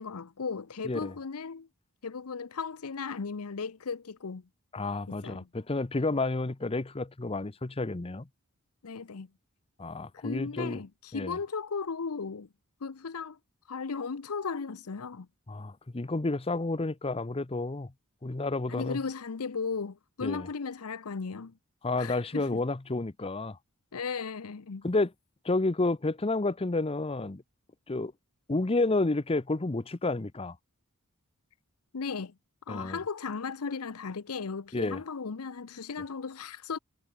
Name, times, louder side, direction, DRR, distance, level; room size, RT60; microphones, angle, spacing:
voice 1, 0.0-1.7 2.0-4.4 5.1-5.5 8.8-9.3 10.1-12.5 12.8-13.4 13.7-15.3 18.7-21.5 22.0-22.6 23.9-24.9 31.9-32.3 32.7-36.8, left 5 dB, 80° left, 0.7 m, -36 dB
voice 2, 4.7-8.3 9.8-10.8 11.1-11.4 15.5-17.9 18.2-19.0 20.2-20.5 21.8-23.6 24.8-25.1 25.4-27.4 27.9-28.1 28.5-30.6 32.7-33.0 34.7-35.0, left 2 dB, 25° left, 0.7 m, -30 dB
head